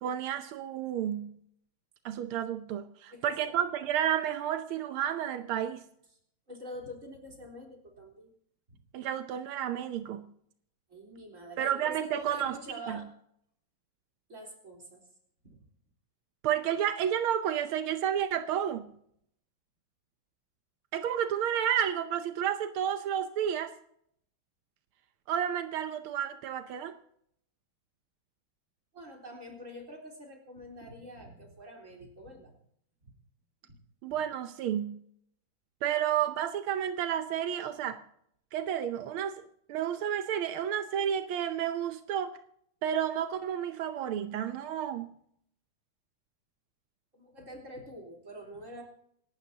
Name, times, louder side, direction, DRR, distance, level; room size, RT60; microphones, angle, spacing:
voice 1, 0.0-1.3 2.0-5.8 8.9-10.2 11.6-12.5 12.9-13.0 16.4-18.9 20.9-23.7 25.3-26.9 34.0-34.9 35.8-38.0 38.5-39.4 39.7-42.3 42.8-45.1, right 9 dB, 85° right, 8 dB, 1.7 m, -31 dB
voice 2, 3.1-3.6 6.5-8.3 10.9-13.1 14.3-15.0 15.4-15.6 28.9-32.5 33.7-33.8 47.1-48.8, equal, 35° right, 0 dB, 4.1 m, -46 dB
27.0 x 12.5 x 2.8 m, 0.71 s
omnidirectional pair, 2.3 m